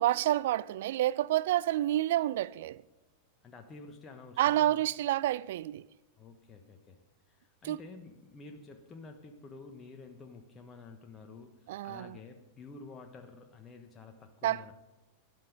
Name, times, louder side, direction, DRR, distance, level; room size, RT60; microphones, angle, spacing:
voice 1, 0.0-2.8 4.4-5.8 7.6-7.8 11.7-12.1 14.4-14.6, right 14 dB, 55° right, 0.3 m, -29 dB
voice 2, 3.4-4.8 6.2-7.0 7.3-14.7, left 3 dB, 20° left, 1.2 m, -50 dB
13.0 x 11.0 x 5.2 m
figure-of-eight pair, 90°, 0 cm